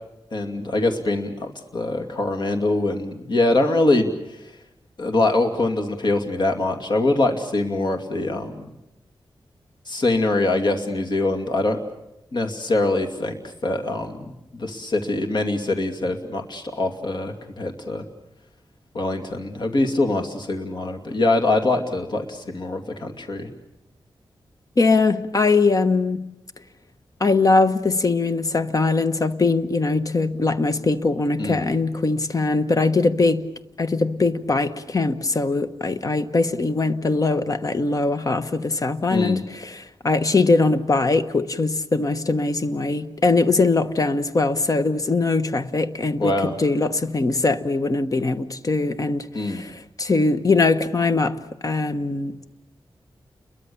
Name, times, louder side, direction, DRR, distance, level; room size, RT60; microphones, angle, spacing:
voice 1, 0.3-4.4 5.0-8.7 9.9-11.8 12.3-18.0 18.9-23.5 31.4-31.7 39.1-39.4 46.2-46.6 49.3-49.6, left 2 dB, 55° left, 2.7 m, -23 dB
voice 2, 24.8-26.3 27.2-33.5 33.8-52.5, left 3 dB, 40° left, 1.2 m, -21 dB
29.5 x 22.5 x 7.1 m
wide cardioid pair, 120°, 9 cm